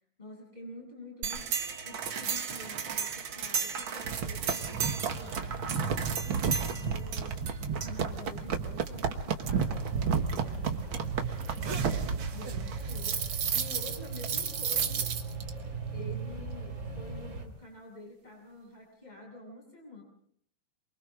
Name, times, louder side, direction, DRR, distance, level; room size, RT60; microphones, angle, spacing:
voice 1, 0.2-1.5 1.8-11.2 12.3-13.2 13.5-15.2 15.9-20.0, left 2 dB, 10° left, -1 dB, 8.0 m, -48 dB
sound 1, 1.2-15.5, right 6 dB, 55° right, 1.5 m, -32 dB
sound 2, 9.5-17.5, right 4 dB, 25° right, 3.1 m, -39 dB
28.0 x 24.5 x 3.8 m, 0.65 s
omnidirectional pair, 4.0 m